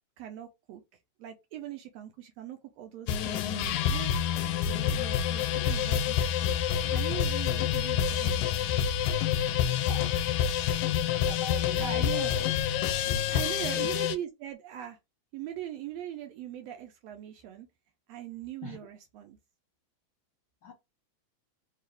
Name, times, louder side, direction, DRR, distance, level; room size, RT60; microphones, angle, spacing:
voice 1, 0.2-0.8 1.2-6.6 6.9-8.5 11.8-12.3 13.3-15.0 15.3-17.7 18.1-19.4, right 11 dB, 75° right, 1.7 m, -41 dB
sound 1, 3.1-14.2, left 9 dB, 90° left, 2.0 m, -28 dB
voice 2, 9.9-10.4 11.1-14.0 18.6-18.8 20.6-20.7, left 4 dB, 65° left, 1.1 m, -44 dB
4.7 x 2.4 x 3.4 m
omnidirectional pair, 3.3 m